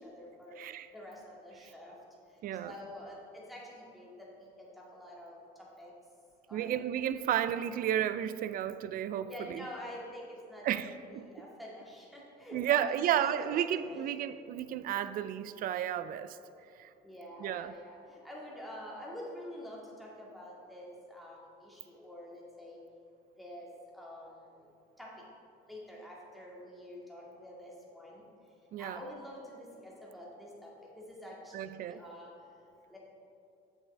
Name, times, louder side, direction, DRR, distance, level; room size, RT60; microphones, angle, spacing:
voice 1, 0.0-0.6 0.9-1.2 1.4-1.9 2.6-4.1 4.6-5.4 5.8-5.9 6.5-6.7 9.2-14.0 17.0-22.8 23.4-23.7 23.9-24.3 25.0-25.1 25.7-28.2 28.8-32.3 32.9-33.0, left 1 dB, ahead, -4 dB, 2.0 m, -47 dB
voice 2, 0.6-0.9 1.6-1.7 2.4-2.8 6.5-9.7 10.6-11.3 12.5-16.4 16.8-16.9 17.4-17.7 28.7-29.0 31.5-32.0, right 10 dB, 60° right, 13 dB, 0.4 m, -32 dB
8.1 x 7.2 x 3.4 m, 2.6 s
cardioid pair, 110°, 17 cm